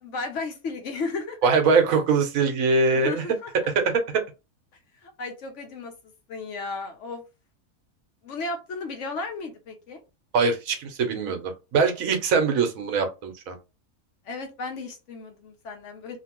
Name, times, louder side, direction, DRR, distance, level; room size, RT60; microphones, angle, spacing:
voice 1, 0.0-1.4 2.9-3.5 5.0-5.9 6.3-7.2 8.2-10.0 14.3-16.2, left 3 dB, 65° left, 1.0 m, -34 dB
voice 2, 1.4-3.2 3.7-4.2 10.3-13.6, right 4 dB, 75° right, 1.1 m, -22 dB
2.9 x 2.5 x 2.9 m
omnidirectional pair, 1.5 m